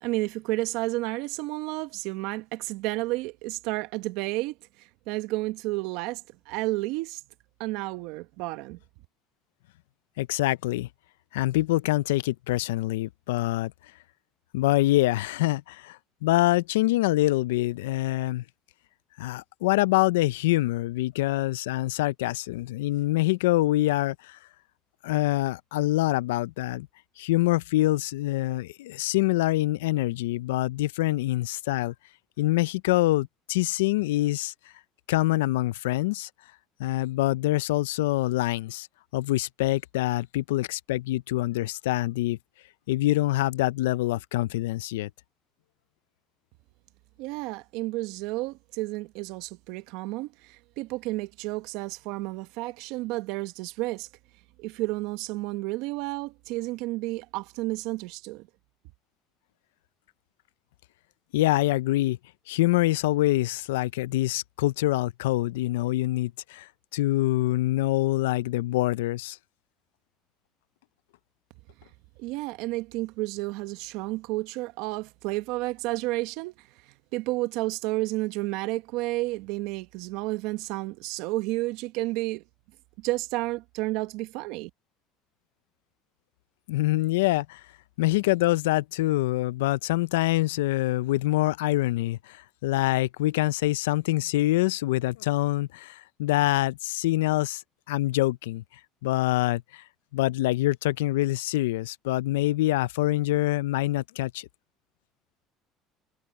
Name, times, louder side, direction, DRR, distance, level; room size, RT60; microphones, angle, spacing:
voice 1, 0.0-7.2 7.6-8.8 47.2-54.1 54.6-58.5 72.2-76.7 77.1-82.4 83.0-84.7, right 20 dB, 75° right, 1.2 m, -31 dB
voice 2, 10.2-10.9 11.3-13.7 14.5-18.4 19.2-24.4 25.0-26.9 27.2-31.9 32.4-34.5 35.1-36.3 36.8-38.9 39.1-42.4 42.9-45.1 61.3-62.2 62.5-69.4 86.7-87.6 88.0-97.6 97.9-98.6 99.0-99.8 100.1-104.5, left 17 dB, 90° left, 0.4 m, -25 dB
supercardioid pair, 85°, 0 cm